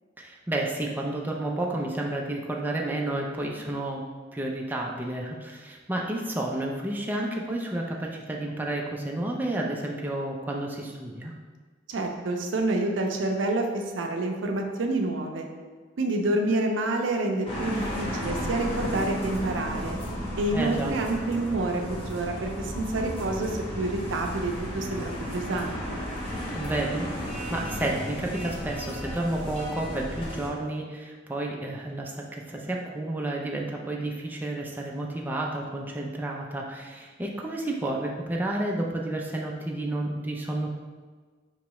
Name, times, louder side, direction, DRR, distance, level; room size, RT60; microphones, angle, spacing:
voice 1, 0.2-4.0 4.3-11.3 20.5-20.9 26.5-40.7, right 1 dB, 10° right, -1 dB, 0.4 m, -31 dB
voice 2, 11.9-15.5 16.0-20.0 20.4-26.0, right 2 dB, 70° right, 3 dB, 0.5 m, -28 dB
sound 1, 17.5-30.5, equal, 30° left, 1.0 m, -34 dB
4.6 x 3.0 x 3.0 m, 1.4 s
head